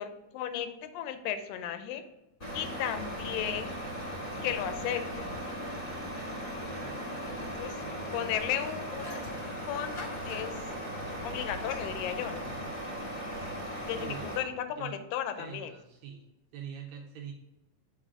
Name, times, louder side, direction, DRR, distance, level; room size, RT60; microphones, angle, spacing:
voice 1, 0.0-2.0 2.5-3.8 4.4-5.3 7.4-7.8 8.1-10.6 11.2-12.5 13.8-15.7, left 10 dB, 85° left, 9 dB, 2.3 m, -35 dB
Truck, 2.4-14.4, equal, 25° left, 1.3 m, -38 dB
voice 2, 6.6-7.0 13.8-14.4 14.8-15.0 15.4-16.2 16.5-17.3, right 8 dB, 80° right, 0 dB, 1.6 m, -44 dB
7.4 x 3.7 x 3.6 m, 0.98 s
omnidirectional pair, 3.9 m